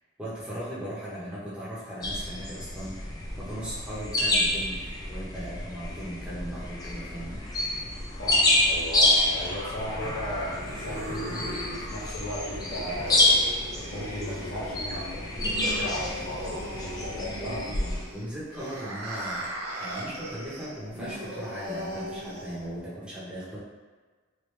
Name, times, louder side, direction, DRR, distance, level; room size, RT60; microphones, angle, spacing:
voice 1, 0.2-4.8 5.1-7.4 17.4-19.5 19.8-23.6, equal, 5° right, -10 dB, 0.8 m, -38 dB
sound 1, 2.0-18.0, left 1 dB, 15° left, 0.3 m, -28 dB
voice 2, 8.2-13.5 13.9-17.6, equal, 65° left, -7 dB, 1.0 m, -36 dB
sound 2, 9.8-22.8, right 1 dB, 80° right, 0.7 m, -38 dB
3.2 x 2.6 x 3.1 m, 1.4 s
head